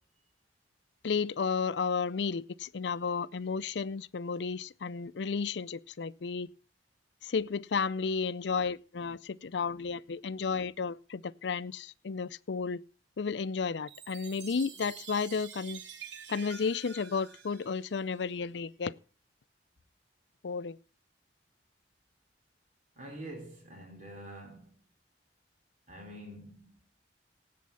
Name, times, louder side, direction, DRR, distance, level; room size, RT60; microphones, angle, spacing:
voice 1, 1.0-6.5 7.2-12.8 13.2-15.8 16.3-18.9 20.4-20.8, left 5 dB, 70° left, 0.5 m, -33 dB
Chime, 13.9-18.4, right 7 dB, 80° right, 1.5 m, -48 dB
voice 2, 22.9-24.8 25.9-26.8, right 1 dB, 45° right, 3.3 m, -46 dB
17.0 x 8.5 x 5.6 m
head